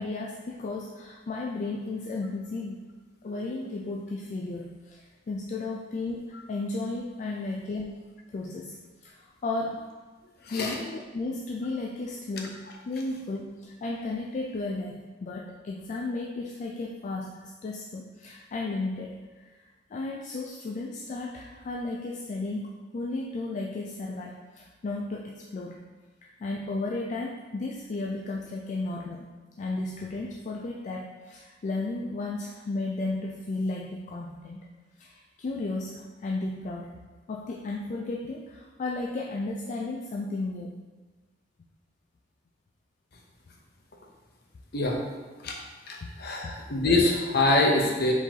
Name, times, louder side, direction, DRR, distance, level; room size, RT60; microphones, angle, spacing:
voice 1, 0.0-2.8 3.2-8.0 8.3-8.7 9.0-9.1 9.4-9.8 10.5-12.6 12.9-19.2 19.9-25.8 26.2-29.3 29.6-34.7 35.0-36.9 37.3-40.8 46.0-46.1 46.4-46.5, left 2 dB, 40° left, -1 dB, 0.3 m, -34 dB
voice 2, 45.9-48.1, left 2 dB, 55° left, 1 dB, 0.7 m, -24 dB
4.8 x 3.9 x 2.8 m, 1.3 s
head